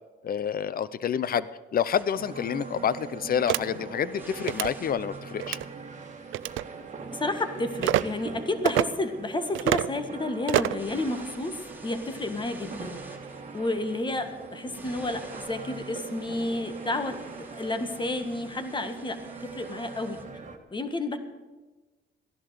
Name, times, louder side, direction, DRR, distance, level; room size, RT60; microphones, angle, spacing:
voice 1, 0.2-5.6, left 8 dB, 50° left, 17 dB, 0.7 m, -28 dB
sound 1, 1.9-20.2, right 2 dB, 10° right, 3.1 m, -52 dB
sound 2, 2.2-20.6, right 4 dB, 35° right, 1.9 m, -42 dB
sound 3, 3.5-3.6 4.4-4.7 5.4-5.7 6.3-6.6 7.8-8.0 8.6-8.9 9.5-9.9 10.5-10.8, right 15 dB, 80° right, 0.4 m, -25 dB
voice 2, 7.1-11.5 11.8-13.0 13.5-20.2 20.7-21.2, left 2 dB, 25° left, 8 dB, 1.6 m, -31 dB
15.0 x 11.0 x 6.7 m, 1.2 s
cardioid pair, 90°, 20 cm